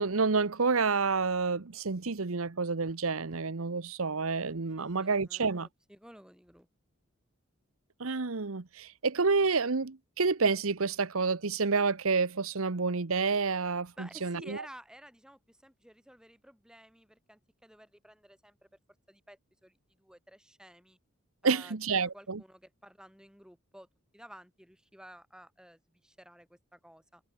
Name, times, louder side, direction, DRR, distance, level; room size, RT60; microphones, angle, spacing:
voice 1, 0.0-5.7 8.0-14.6 21.4-22.4, right 4 dB, 75° right, 1.0 m, -29 dB
voice 2, 4.8-6.7 14.0-18.7 19.1-21.0 21.4-23.9 24.1-27.2, equal, 5° right, 7.1 m, -53 dB
head